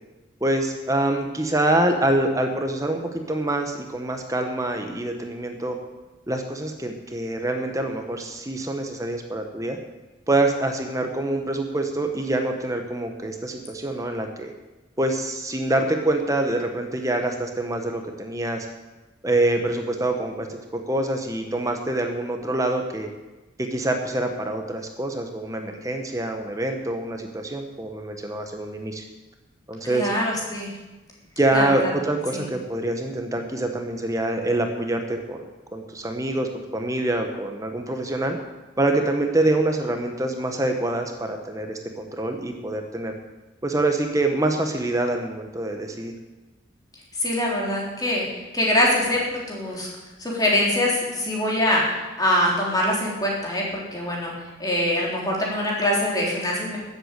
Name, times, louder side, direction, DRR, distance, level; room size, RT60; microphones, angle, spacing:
voice 1, 0.4-5.8 6.3-9.8 10.3-14.5 15.0-18.7 19.2-20.5 20.7-23.1 23.6-29.0 29.7-30.1 31.4-38.4 38.8-43.1 43.6-46.1, right 1 dB, 15° right, 4 dB, 1.1 m, -25 dB
voice 2, 29.8-30.7 31.5-31.9 32.3-32.4 47.2-48.3 48.5-49.2 49.5-49.9 50.2-53.6 53.9-54.3 54.6-56.8, left 1 dB, 20° left, -3 dB, 3.5 m, -23 dB
13.0 x 8.2 x 8.2 m, 1.1 s
head